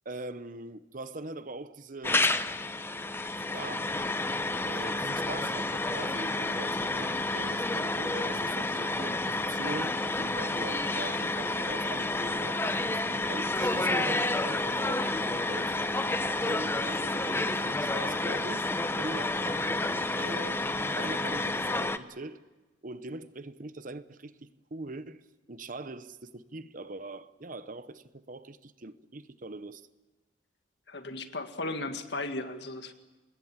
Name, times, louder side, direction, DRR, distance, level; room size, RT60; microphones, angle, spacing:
voice 1, 0.0-2.3 3.3-3.9 4.6-15.7 16.4-20.6 20.9-22.4 22.8-25.2 25.5-29.9, right 2 dB, 45° right, 0.9 m, -42 dB
sound 1, 2.0-22.0, left 2 dB, 10° left, 0.8 m, -30 dB
voice 2, 30.9-32.9, left 2 dB, 60° left, 2.0 m, -36 dB
26.5 x 21.0 x 7.4 m
head